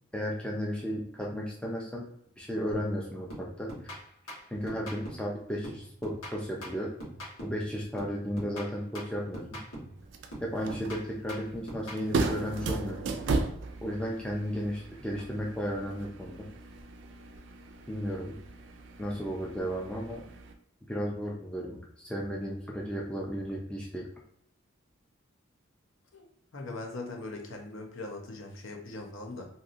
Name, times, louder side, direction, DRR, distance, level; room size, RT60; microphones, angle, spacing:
voice 1, 0.1-2.1 2.4-3.9 4.5-6.9 7.4-9.6 10.4-13.1 13.8-16.5 17.9-18.4 19.0-20.2 20.8-24.1, equal, 5° left, -3 dB, 0.4 m, -34 dB
sound 1, 3.3-5.3 5.6-7.7 8.0-10.0 10.3-12.1, equal, 90° left, 1.3 m, -43 dB
sound 2, 10.0-20.5, right 3 dB, 60° right, 0.3 m, -37 dB
voice 2, 26.5-29.4, left 2 dB, 70° left, 1 dB, 0.7 m, -40 dB
2.8 x 2.7 x 2.5 m, 0.73 s
head